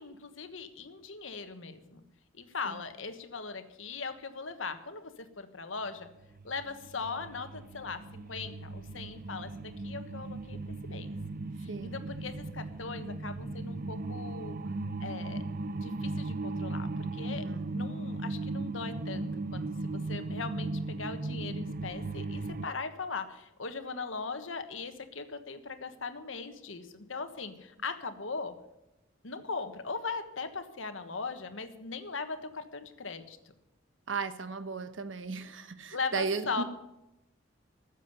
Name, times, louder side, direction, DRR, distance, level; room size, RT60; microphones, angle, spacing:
voice 1, 0.0-2.0 2.3-6.1 6.4-11.1 11.6-14.6 15.0-15.4 15.8-28.5 29.2-33.4 35.9-36.6, left 4 dB, 90° left, 9 dB, 1.3 m, -39 dB
sound 1, 6.0-22.7, right 2 dB, 50° right, 0.6 m, -37 dB
voice 2, 11.7-12.0 17.4-17.8 34.1-36.6, right 4 dB, 75° right, 11 dB, 1.1 m, -36 dB
14.0 x 7.4 x 9.6 m, 0.91 s
head